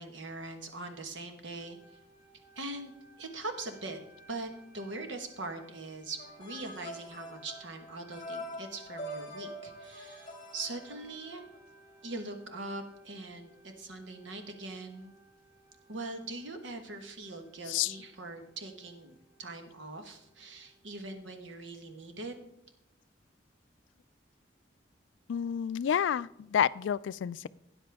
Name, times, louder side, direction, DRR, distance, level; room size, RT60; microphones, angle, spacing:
voice 1, 0.0-2.0 2.5-2.9 3.2-4.0 4.3-11.4 12.0-15.1 15.9-22.3, right 2 dB, 80° right, 6 dB, 1.4 m, -42 dB
sound 1, 1.5-21.1, right 2 dB, 15° right, 4.3 m, -61 dB
vov teclado, 6.2-11.6, equal, 25° left, 2.0 m, -44 dB
voice 2, 25.3-27.5, left 9 dB, 75° left, 19 dB, 0.3 m, -29 dB
12.5 x 9.6 x 3.5 m, 0.83 s
head